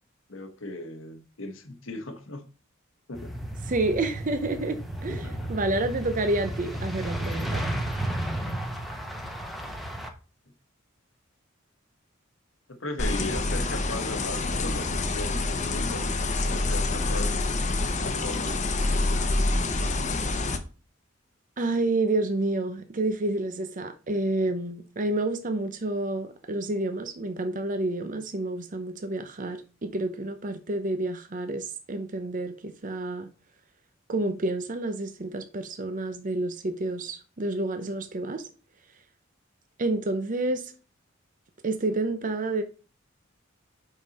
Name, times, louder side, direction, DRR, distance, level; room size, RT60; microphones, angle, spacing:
voice 1, 0.3-2.5 3.1-3.3 5.1-5.5 12.7-16.1 16.4-19.5 25.1-25.2, left 2 dB, 75° left, 1.2 m, -38 dB
sound 1, 3.1-10.1, right 1 dB, ahead, 1.0 m, -33 dB
voice 2, 3.7-7.6 21.6-33.3 34.1-38.4 39.8-40.7 41.6-42.6, right 2 dB, 40° right, 0.7 m, -29 dB
sound 2, 13.0-20.6, left 2 dB, 35° left, 0.9 m, -27 dB
5.5 x 5.3 x 4.1 m
head